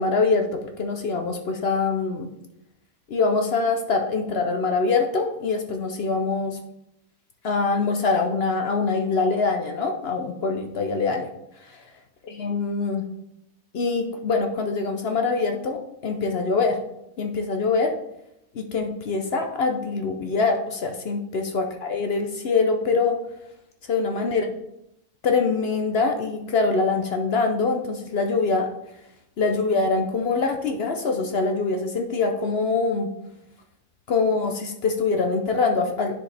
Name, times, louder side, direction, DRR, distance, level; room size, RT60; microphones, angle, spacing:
voice 1, 0.0-2.3 3.1-6.6 7.4-11.3 12.3-13.0 13.7-16.8 17.2-17.9 18.5-23.2 23.9-24.4 25.2-28.7 29.4-33.1 34.1-36.1, left 4 dB, 55° left, 4 dB, 0.8 m, -24 dB
9.7 x 4.8 x 3.3 m, 0.84 s
omnidirectional pair, 1.5 m